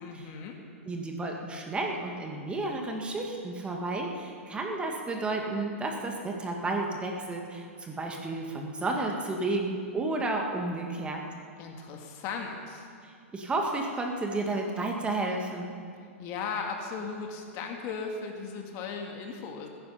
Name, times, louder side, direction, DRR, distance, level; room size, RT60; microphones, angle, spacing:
voice 1, 0.0-0.6 11.6-12.9 16.2-19.7, left 5 dB, 40° left, 2 dB, 2.1 m, -37 dB
voice 2, 0.9-11.2 13.0-15.8, right 2 dB, 15° right, 1 dB, 1.9 m, -32 dB
20.0 x 10.5 x 5.7 m, 2.3 s
hypercardioid pair, 125°, 7 cm